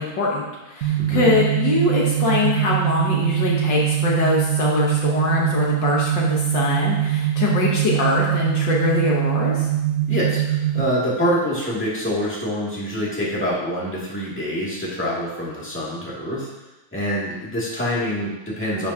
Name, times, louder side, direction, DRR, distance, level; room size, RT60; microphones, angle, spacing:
voice 1, 0.0-9.7, left 3 dB, 65° left, -3 dB, 1.8 m, -23 dB
sound 1, 0.8-10.8, right 12 dB, 55° right, 1.2 m, -22 dB
voice 2, 1.0-1.3 10.1-16.5 16.9-18.9, equal, 5° left, -7 dB, 2.2 m, -25 dB
10.5 x 7.2 x 2.8 m, 1.0 s
omnidirectional pair, 2.2 m